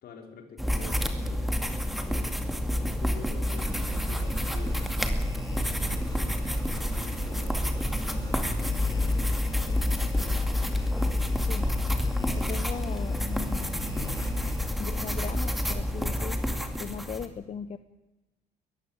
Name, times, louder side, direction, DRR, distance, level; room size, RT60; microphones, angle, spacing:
voice 1, 0.0-5.2 5.8-10.5, left 5 dB, 65° left, 4 dB, 4.6 m, -47 dB
sound 1, 0.6-17.3, equal, ahead, 2.3 m, -30 dB
sound 2, 3.4-14.7, left 3 dB, 25° left, 4.0 m, -33 dB
voice 2, 11.4-11.7 12.3-14.0 14.8-16.4 16.8-17.8, left 7 dB, 40° left, 12 dB, 0.9 m, -38 dB
21.5 x 14.5 x 8.9 m, 1.1 s
cardioid pair, 110°, 17 cm